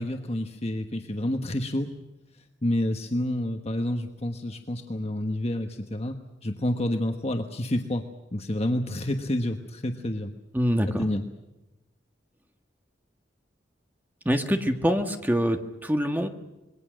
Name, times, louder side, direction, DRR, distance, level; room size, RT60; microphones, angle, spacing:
voice 1, 0.0-1.9 2.6-6.2 6.4-8.0 8.3-10.3 11.0-11.2, left 1 dB, 35° left, 4 dB, 1.3 m, -28 dB
voice 2, 10.5-11.1 14.2-16.3, equal, 10° right, 5 dB, 1.6 m, -25 dB
26.5 x 22.0 x 6.5 m, 1.0 s
head